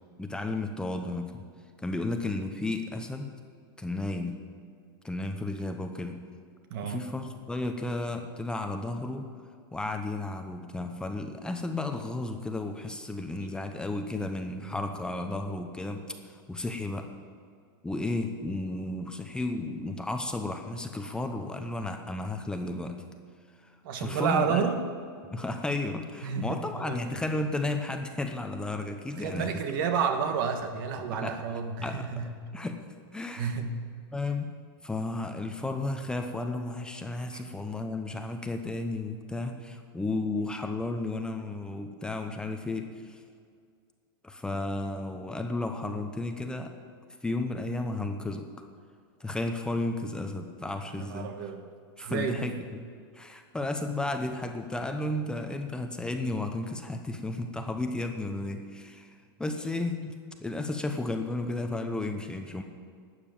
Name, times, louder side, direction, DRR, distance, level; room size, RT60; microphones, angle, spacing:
voice 1, 0.2-1.4 1.8-3.3 3.8-4.4 5.0-6.2 6.8-9.3 9.7-17.1 17.8-23.0 24.0-24.7 25.3-29.5 31.2-31.4 31.8-32.2 32.5-32.8 33.1-33.5 34.1-34.5 34.8-43.2 44.2-46.7 47.2-48.5 49.2-51.3 52.0-52.8 53.1-60.1 60.4-62.6, left 2 dB, 5° left, 5 dB, 0.8 m, -33 dB
voice 2, 6.7-7.1 23.8-24.8 26.2-27.0 29.2-32.3 33.4-33.7 37.3-37.4 50.9-51.6 52.0-52.5, right 6 dB, 60° right, 6 dB, 1.6 m, -30 dB
12.5 x 8.2 x 8.9 m, 2.2 s
supercardioid pair, 135°, 12 cm